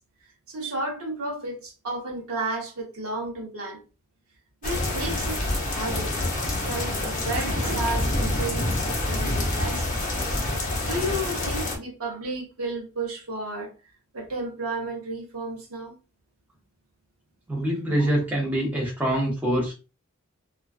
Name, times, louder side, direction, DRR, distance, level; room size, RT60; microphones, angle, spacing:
voice 1, 0.5-3.8 4.6-6.2 6.4-10.4 10.8-13.7 14.1-15.9 18.0-18.1, right 2 dB, 70° right, 0.8 m, -32 dB
sound 1, 4.6-11.8, left 1 dB, 35° left, 0.6 m, -27 dB
voice 2, 17.5-19.7, right 1 dB, 5° right, 0.8 m, -25 dB
2.4 x 2.3 x 2.3 m
head